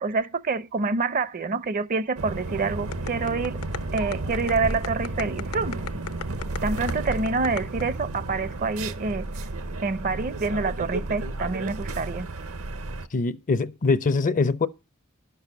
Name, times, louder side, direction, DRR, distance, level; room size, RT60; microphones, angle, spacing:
voice 1, 0.0-3.6 3.9-5.8 6.6-9.3 9.8-12.3, right 4 dB, 40° right, 0.6 m, -27 dB
sound 1, 2.2-13.1, right 2 dB, 70° right, 0.9 m, -32 dB
sound 2, 2.9-7.8, left 6 dB, 80° left, 0.9 m, -35 dB
voice 2, 13.1-14.7, left 4 dB, 35° left, 0.5 m, -23 dB
11.5 x 6.9 x 5.8 m
head